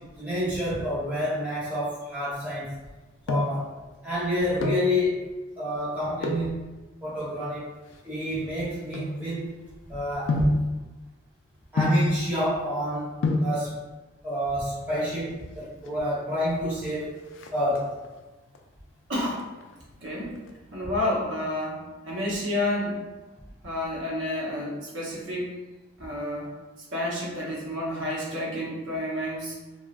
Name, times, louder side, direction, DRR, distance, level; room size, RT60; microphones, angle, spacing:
voice 1, 0.0-2.8 3.3-3.8 4.0-5.2 5.6-6.7 7.0-7.7 8.0-9.5 9.9-10.5 11.7-13.8 14.2-17.2 17.5-17.9, equal, 10° right, -10 dB, 0.9 m, -29 dB
Golpe estómago y golpe, 2.9-3.7 4.4-4.9 6.2-6.5 7.3-9.7 10.3-10.7 11.8-12.2 12.9-13.0 13.2-13.6 14.7-15.2 15.5-15.6 15.8-16.0 16.4-16.8 17.1-18.1 18.5-19.0 19.3-20.5 20.8-20.9, left 1 dB, 75° left, 0.3 m, -27 dB
voice 2, 19.1-19.4 20.0-20.5 20.7-23.1 23.6-25.6 26.0-26.5 26.9-29.6, left 1 dB, 80° right, -5 dB, 0.8 m, -30 dB
3.1 x 2.3 x 2.4 m, 1.2 s
head